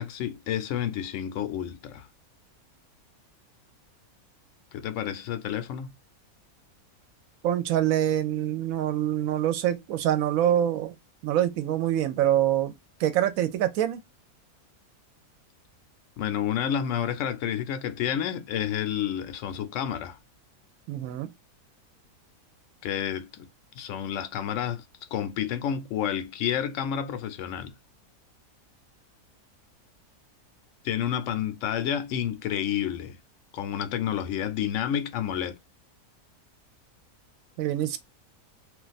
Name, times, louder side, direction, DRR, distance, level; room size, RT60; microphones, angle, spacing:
voice 1, 0.0-2.1 4.7-5.9 16.2-20.2 22.8-23.5 23.7-24.8 25.1-27.7 30.8-33.2 33.5-35.6, left 9 dB, 70° left, 0.8 m, -30 dB
voice 2, 7.4-11.0 11.2-12.7 13.0-14.0 20.9-21.3 37.6-38.0, right 11 dB, 75° right, 1.0 m, -25 dB
2.5 x 2.3 x 3.9 m
omnidirectional pair, 1.6 m